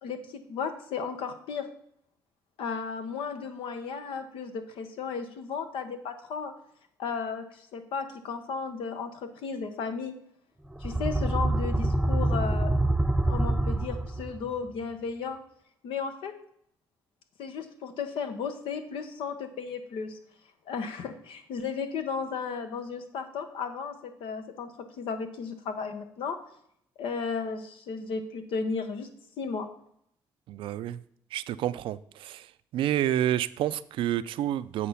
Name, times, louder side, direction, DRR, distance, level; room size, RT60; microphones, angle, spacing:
voice 1, 0.0-1.7 2.6-6.5 7.0-10.1 10.8-12.7 13.2-15.4 15.8-16.3 17.4-20.2 20.7-26.4 27.0-29.1 29.4-29.7, left 5 dB, 85° left, 1.0 m, -34 dB
sound 1, 10.7-14.5, right 1 dB, 10° right, 0.6 m, -26 dB
voice 2, 30.5-31.0 31.3-32.5 32.7-34.9, right 12 dB, 80° right, 0.4 m, -29 dB
8.4 x 4.7 x 5.7 m
cardioid pair, 80°, 9 cm